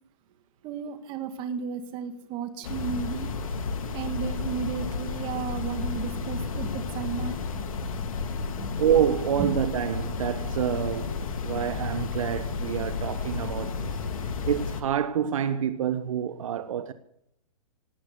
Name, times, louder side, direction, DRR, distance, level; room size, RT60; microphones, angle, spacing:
voice 1, 0.6-3.4 3.9-8.3 8.5-8.7 9.4-9.6, right 7 dB, 25° right, 2.0 m, -34 dB
sound 1, 2.6-14.8, left 4 dB, 70° left, 2.4 m, -32 dB
voice 2, 8.8-13.9 14.5-16.9, right 9 dB, 65° right, 1.0 m, -27 dB
18.0 x 9.6 x 8.2 m
hypercardioid pair, 145°, 18 cm